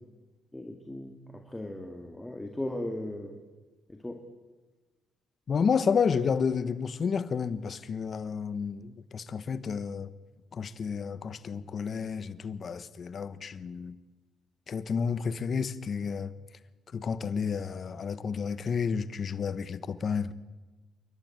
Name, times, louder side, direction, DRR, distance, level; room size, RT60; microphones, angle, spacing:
voice 1, 0.5-3.4 3.9-4.3, left 1 dB, 10° left, 2.0 m, -37 dB
voice 2, 5.5-10.1 10.5-14.0 14.7-16.3 16.9-20.3, left 6 dB, 50° left, 1.1 m, -31 dB
28.0 x 12.0 x 9.1 m
cardioid pair, 90°, 0 cm